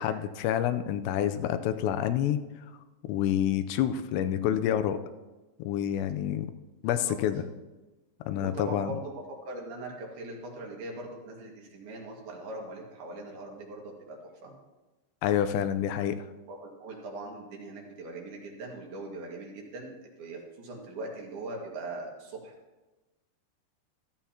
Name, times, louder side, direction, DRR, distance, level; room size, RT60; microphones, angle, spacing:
voice 1, 0.0-2.4 3.0-5.0 5.6-6.5 6.8-7.4 8.3-8.9 15.2-16.2, left 10 dB, 85° left, 10 dB, 2.9 m, -28 dB
voice 2, 6.9-7.2 8.4-9.1 9.4-14.5 16.5-22.5, right 2 dB, 65° right, -1 dB, 3.6 m, -41 dB
15.0 x 13.5 x 2.9 m, 1.1 s
omnidirectional pair, 5.0 m